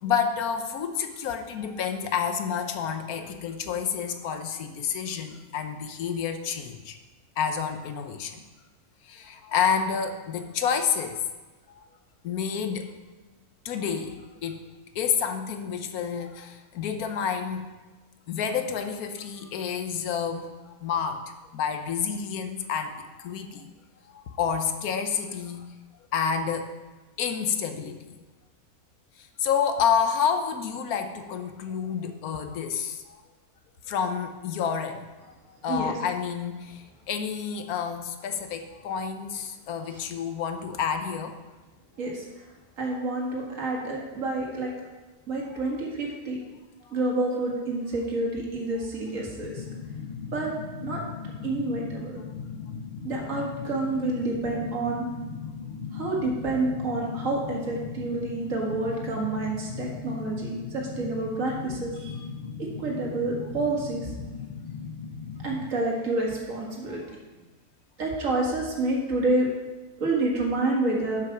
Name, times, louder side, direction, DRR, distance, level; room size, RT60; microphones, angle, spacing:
voice 1, 0.0-7.0 7.4-8.4 9.0-11.2 12.2-12.9 13.6-14.6 14.9-17.7 18.3-21.2 21.5-23.7 24.1-25.7 26.1-26.7 27.2-28.2 29.2-33.2 33.9-41.3 46.8-46.9 66.9-67.0, left 7 dB, 80° left, 8 dB, 1.2 m, -29 dB
voice 2, 42.8-44.7 45.3-46.4 46.9-49.6 50.3-50.5 50.8-51.0 51.4-52.2 53.0-55.1 55.9-62.1 62.6-64.1 65.4-67.0 68.0-69.5 70.0-71.2, right 2 dB, 60° right, -2 dB, 2.1 m, -28 dB
sound 1, 49.4-65.7, left 6 dB, 50° left, 0.7 m, -38 dB
7.8 x 5.9 x 5.8 m, 1.2 s
omnidirectional pair, 1.6 m